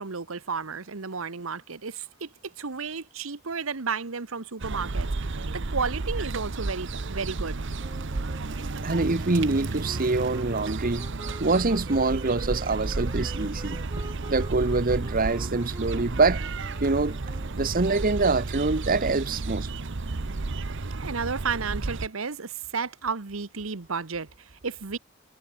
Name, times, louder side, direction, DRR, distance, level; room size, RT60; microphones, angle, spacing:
voice 1, 0.0-7.6 21.0-25.0, right 5 dB, 85° right, 1.2 m, -33 dB
sound 1, 4.6-22.1, right 3 dB, 65° right, 0.9 m, -32 dB
sound 2, 7.8-18.3, right 1 dB, 15° right, 5.3 m, -47 dB
voice 2, 8.8-11.1 11.4-13.8 14.3-16.4 16.8-17.2 17.6-19.7, right 3 dB, 45° right, 1.1 m, -25 dB
head